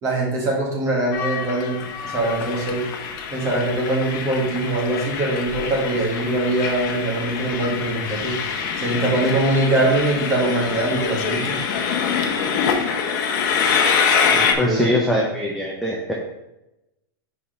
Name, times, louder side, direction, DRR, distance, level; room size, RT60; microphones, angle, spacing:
voice 1, 0.0-2.8 3.3-11.6 14.3-14.9, right 2 dB, 25° right, -2 dB, 1.9 m, -23 dB
Train, 1.1-14.5, left 6 dB, 50° left, 1.0 m, -25 dB
voice 2, 14.6-16.1, left 1 dB, ahead, -4 dB, 0.6 m, -22 dB
5.6 x 4.9 x 5.2 m, 0.92 s
supercardioid pair, 165°, 13 cm